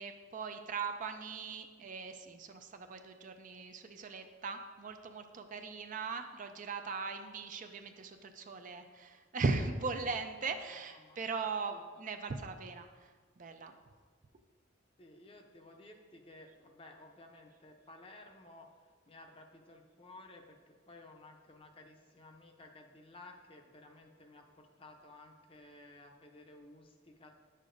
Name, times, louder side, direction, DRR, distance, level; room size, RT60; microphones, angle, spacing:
voice 1, 0.0-13.1 13.4-13.7, right 4 dB, 40° right, 7 dB, 0.4 m, -39 dB
voice 2, 10.7-11.4 11.7-11.9 15.0-27.3, left 2 dB, 30° left, 3 dB, 0.6 m, -56 dB
9.4 x 6.6 x 2.6 m, 1.5 s
head